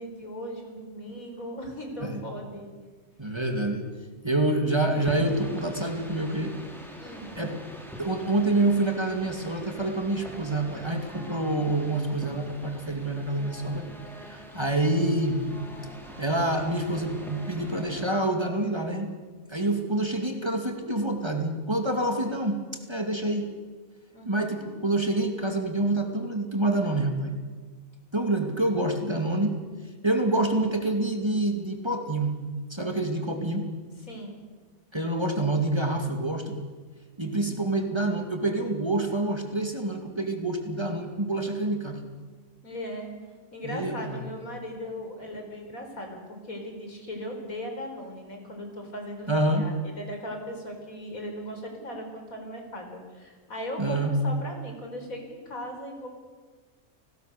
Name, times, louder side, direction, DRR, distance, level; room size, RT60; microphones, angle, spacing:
voice 1, 0.0-2.7 7.0-7.4 24.1-24.5 34.0-34.4 42.6-43.1 43.5-49.3 49.6-56.1, equal, 80° left, 3 dB, 4.9 m, -38 dB
voice 2, 3.2-3.9 4.2-6.5 7.3-7.6 8.0-13.9 14.1-15.4 16.2-19.1 19.5-22.6 22.9-23.5 24.2-27.3 28.1-29.5 30.0-32.3 32.7-33.7 34.9-36.6 37.2-42.0 43.6-44.2 49.3-49.7 53.8-54.1, right 2 dB, 20° right, 4 dB, 2.4 m, -27 dB
sound 1, 4.9-18.1, equal, ahead, 4.0 m, -43 dB
29.5 x 19.5 x 6.8 m, 1.4 s
omnidirectional pair, 1.4 m